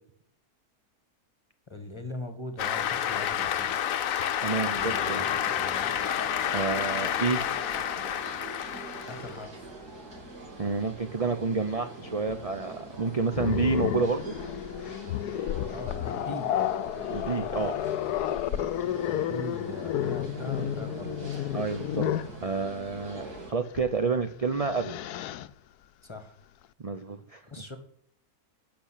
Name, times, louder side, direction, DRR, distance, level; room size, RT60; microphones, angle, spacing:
voice 1, 1.7-4.0 4.7-6.0 9.1-9.7 15.7-16.5 18.8-21.1 26.0-26.3 27.5-27.8, left 2 dB, 20° left, 8 dB, 1.6 m, -41 dB
Cheering / Applause, 2.6-9.4, left 10 dB, 65° left, 1.1 m, -29 dB
voice 2, 4.4-5.3 6.5-7.4 10.6-14.3 17.1-17.7 21.5-22.1 22.4-25.0 26.8-27.4, right 4 dB, 35° right, 8 dB, 0.5 m, -29 dB
sound 1, 4.4-23.5, right 2 dB, 90° right, 3.9 m, -43 dB
Growling, 13.3-22.4 23.7-23.9 24.3-25.5, left 11 dB, 85° left, 1.2 m, -31 dB
12.0 x 6.2 x 8.5 m, 0.65 s
omnidirectional pair, 1.6 m